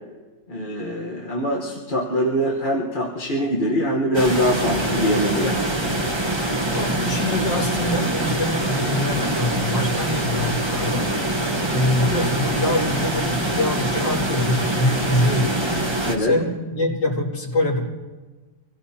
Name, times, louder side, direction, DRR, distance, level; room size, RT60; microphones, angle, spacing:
voice 1, 0.5-5.6 16.1-16.3, equal, 30° left, -3 dB, 1.3 m, -23 dB
sound 1, 4.1-16.2, right 1 dB, 20° right, 1.1 m, -24 dB
voice 2, 6.7-11.1 11.7-15.8 16.2-17.8, left 1 dB, 75° left, -6 dB, 3.4 m, -24 dB
25.5 x 17.0 x 2.9 m, 1.3 s
omnidirectional pair, 1.9 m